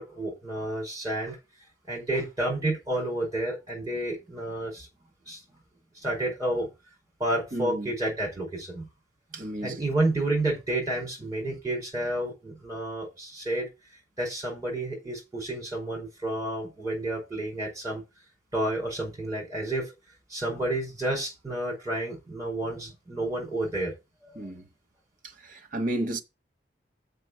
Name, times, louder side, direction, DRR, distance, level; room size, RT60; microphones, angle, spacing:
voice 1, 0.0-1.4 1.9-4.9 5.3-5.4 6.0-6.7 7.2-8.9 9.6-13.7 14.2-18.0 18.5-19.9 20.3-23.9 24.2-24.5, right 1 dB, 15° right, 4.7 m, -30 dB
voice 2, 7.5-7.9 9.3-9.8 24.4-24.6 25.4-26.2, right 1 dB, 45° right, 1.2 m, -32 dB
6.7 x 5.6 x 6.3 m
head